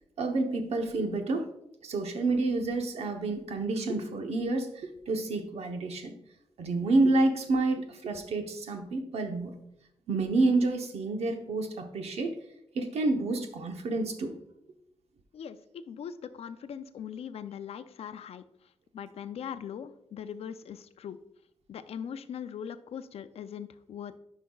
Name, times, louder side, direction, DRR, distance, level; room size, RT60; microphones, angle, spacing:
voice 1, 0.2-1.5 1.8-6.1 6.6-9.5 10.1-12.4 12.7-14.3, right 2 dB, 80° right, 5 dB, 0.9 m, -29 dB
voice 2, 15.3-18.4 18.9-21.2 21.7-24.2, left 8 dB, 75° left, 12 dB, 0.4 m, -40 dB
10.0 x 5.5 x 2.3 m, 0.80 s
wide cardioid pair, 175°, 10 cm